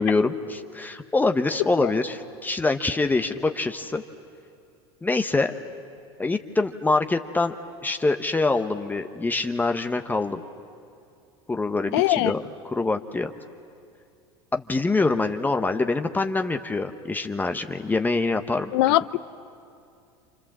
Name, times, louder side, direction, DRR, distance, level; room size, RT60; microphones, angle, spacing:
voice 1, 0.0-4.0 5.0-5.5 6.2-7.5 7.8-10.4 11.5-13.3 14.5-18.7, left 3 dB, 15° left, 6 dB, 1.0 m, -25 dB
voice 2, 11.9-12.3 18.7-19.2, left 16 dB, 75° left, 15 dB, 0.7 m, -21 dB
28.5 x 27.5 x 7.3 m, 2.5 s
supercardioid pair, 100°, 14 cm